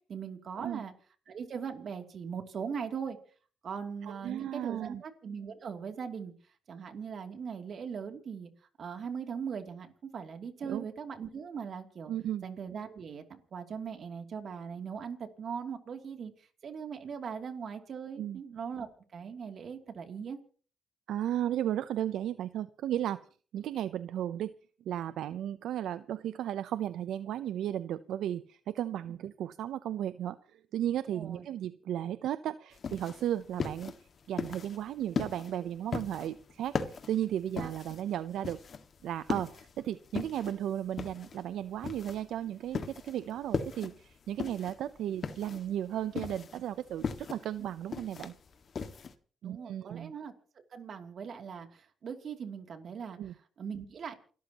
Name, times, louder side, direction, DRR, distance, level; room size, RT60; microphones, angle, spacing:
voice 1, 0.1-0.9 1.3-3.2 3.6-6.3 6.7-8.5 8.8-12.1 12.4-20.4 29.1-29.2 31.1-31.5 37.6-37.7 47.6-47.7 49.4-50.3 50.7-53.2 53.6-54.1, right 6 dB, 55° right, 5 dB, 2.8 m, -40 dB
voice 2, 4.0-5.0 10.6-10.9 12.1-12.5 18.2-18.4 21.1-23.2 23.5-24.5 24.9-33.9 34.3-38.6 39.0-48.3 49.4-50.1 53.2-53.3, right 11 dB, 75° right, 14 dB, 0.6 m, -35 dB
sound 1, 32.7-49.1, left 5 dB, 50° left, 1.8 m, -38 dB
29.0 x 13.5 x 3.0 m, 0.42 s
cardioid pair, 90°, 0 cm